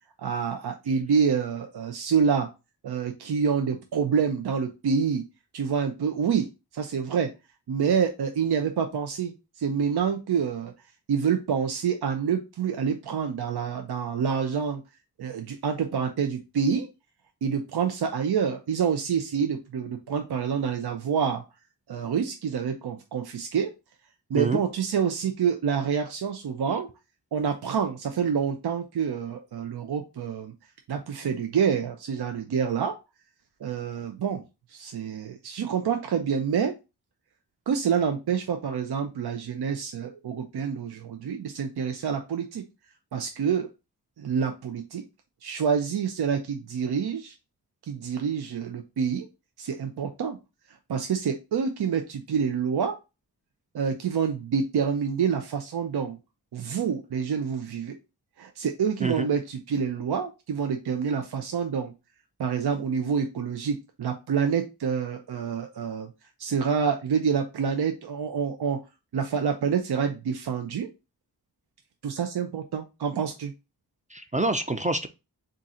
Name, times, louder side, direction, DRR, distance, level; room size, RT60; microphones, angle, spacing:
voice 1, 0.2-2.5 2.8-5.2 5.5-6.5 6.7-7.3 7.7-10.7 11.1-14.8 15.2-16.9 17.4-21.4 21.9-23.7 24.3-26.9 27.3-30.5 30.9-32.9 33.6-34.4 34.7-36.7 37.7-42.6 43.1-43.7 44.2-45.0 45.4-47.3 47.8-49.3 49.6-50.4 50.7-53.0 53.7-56.2 56.5-58.0 58.4-61.9 62.4-66.1 66.4-68.8 69.1-70.9 72.0-73.5, right 7 dB, 75° right, 5 dB, 0.6 m, -27 dB
voice 2, 74.1-75.1, right 2 dB, 20° right, 7 dB, 0.4 m, -26 dB
3.7 x 2.6 x 4.1 m, 0.27 s
cardioid pair, 60°, 39 cm